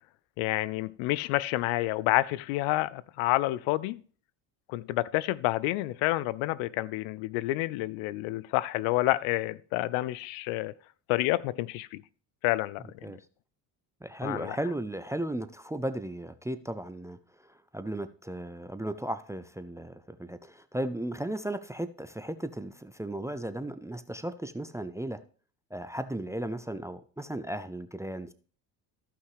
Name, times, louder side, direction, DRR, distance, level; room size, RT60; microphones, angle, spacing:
voice 1, 0.4-4.0 4.7-10.7 11.1-12.0 12.4-12.8 14.2-14.6, left 18 dB, 70° left, 0.6 m, -29 dB
voice 2, 14.0-17.2 17.7-25.2 25.7-28.3, right 1 dB, 5° right, 0.4 m, -35 dB
14.5 x 5.8 x 3.2 m
supercardioid pair, 75°, 49 cm